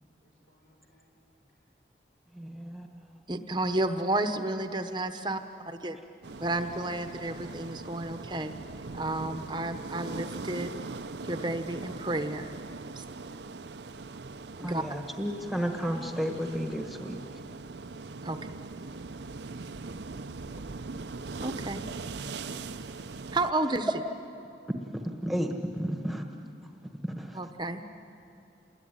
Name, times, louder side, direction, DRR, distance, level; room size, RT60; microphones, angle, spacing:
voice 1, 0.2-1.4 12.9-13.4, equal, 75° left, 0 dB, 6.4 m, -64 dB
voice 2, 2.3-3.2 14.6-17.2 22.9-23.0 24.9-26.3 27.0-27.4, equal, ahead, 3 dB, 1.4 m, -33 dB
voice 3, 3.3-6.0 6.4-8.5 8.9-10.7 11.2-12.5 12.9-13.0 14.5-14.8 18.2-18.4 21.4-21.8 23.3-23.9 27.3-27.8, right 2 dB, 25° right, 8 dB, 1.0 m, -31 dB
sound 1, 6.2-23.5, right 3 dB, 70° right, 0.7 m, -41 dB
28.5 x 21.0 x 10.0 m, 2.7 s
head